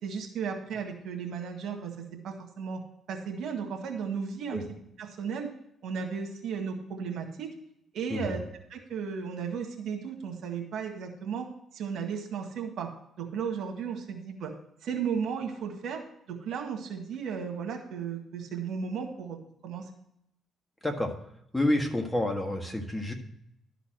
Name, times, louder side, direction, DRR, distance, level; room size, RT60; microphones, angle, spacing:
voice 1, 0.0-1.9 2.2-2.8 3.1-4.6 5.0-5.5 5.8-7.5 7.9-8.4 8.7-12.9 13.2-14.5 14.8-16.0 16.3-19.4 19.6-19.8, right 6 dB, 75° right, 3 dB, 1.8 m, -34 dB
voice 2, 21.5-23.1, left 1 dB, 10° left, 3 dB, 1.6 m, -28 dB
12.0 x 4.1 x 7.6 m, 0.75 s
cardioid pair, 90°, 0 cm